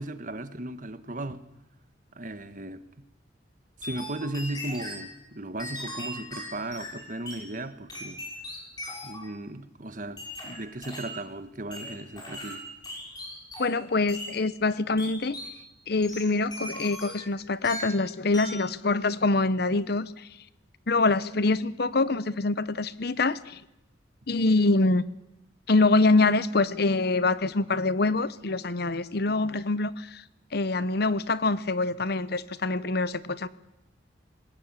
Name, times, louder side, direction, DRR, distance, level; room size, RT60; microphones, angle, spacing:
voice 1, 0.0-1.4 2.1-2.8 3.8-8.2 9.0-12.6 24.3-24.5, right 1 dB, 45° right, 1.4 m, -36 dB
sound 1, 3.8-5.1 5.6-7.5 7.9-9.3 10.2-11.2 11.7-13.8 14.1-14.4 15.0-15.6 16.0-17.3 17.6-18.0 18.3-18.7, left 1 dB, 20° left, 6.1 m, -39 dB
voice 2, 13.6-15.3 15.9-20.1 20.9-23.6 24.3-25.0 25.7-30.2 30.5-33.5, left 3 dB, 55° left, 0.8 m, -25 dB
20.5 x 19.0 x 8.9 m
head